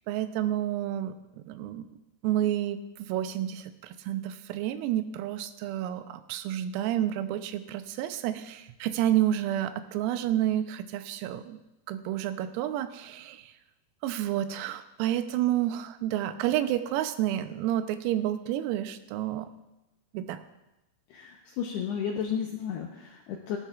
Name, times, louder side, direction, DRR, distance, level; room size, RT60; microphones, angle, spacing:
voice 1, 0.1-1.9 2.2-11.6 11.9-13.5 14.0-19.5 20.1-20.4, right 12 dB, 85° right, 10 dB, 3.4 m, -30 dB
voice 2, 21.1-23.6, left 8 dB, 85° left, 1 dB, 2.4 m, -33 dB
19.0 x 13.5 x 2.4 m, 0.95 s
omnidirectional pair, 5.9 m